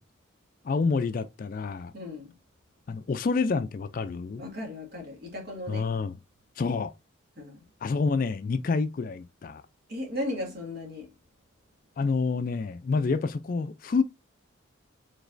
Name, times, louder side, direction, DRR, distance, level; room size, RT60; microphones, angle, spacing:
voice 1, 0.6-1.9 2.9-4.4 5.7-6.2 6.6-6.9 7.8-9.6 12.0-14.0, left 4 dB, 40° left, 0.3 m, -28 dB
voice 2, 1.9-2.4 4.4-5.9 7.4-7.7 9.9-11.1, left 1 dB, 50° right, 1.9 m, -36 dB
5.0 x 3.8 x 2.5 m
head